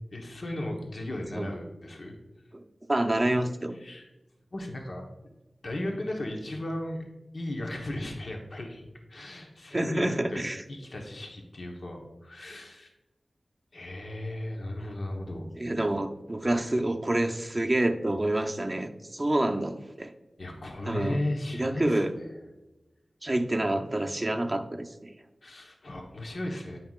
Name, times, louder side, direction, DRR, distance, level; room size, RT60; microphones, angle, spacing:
voice 1, 0.1-2.1 3.7-4.1 4.5-5.0 5.6-7.0 7.3-8.8 9.1-12.9 13.7-15.4 20.4-22.3 25.4-26.8, left 1 dB, 65° left, 1 dB, 1.0 m, -36 dB
voice 2, 2.9-3.7 9.7-10.6 15.6-20.1 20.9-21.2 21.5-22.1 23.2-25.1, right 1 dB, 25° right, 4 dB, 0.6 m, -28 dB
9.3 x 5.6 x 2.4 m, 1.0 s
wide cardioid pair, 80°, 0 cm